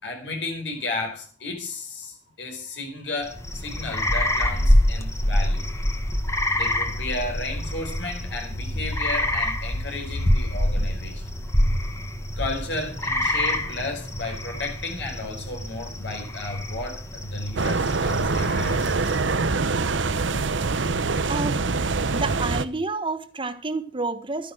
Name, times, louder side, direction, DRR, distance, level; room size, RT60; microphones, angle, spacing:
voice 1, 0.0-5.7 6.5-11.2 12.4-18.9, left 2 dB, 70° left, 4.5 m, -33 dB
sound 1, 3.2-19.5, left 1 dB, 15° left, 1.6 m, -26 dB
sound 2, 3.7-22.8, right 1 dB, 55° left, 3.3 m, -42 dB
sound 3, 17.6-22.6, right 4 dB, 90° right, 0.9 m, -24 dB
voice 2, 21.3-21.6 22.1-24.5, right 3 dB, 30° right, 1.3 m, -29 dB
13.0 x 10.0 x 6.2 m
head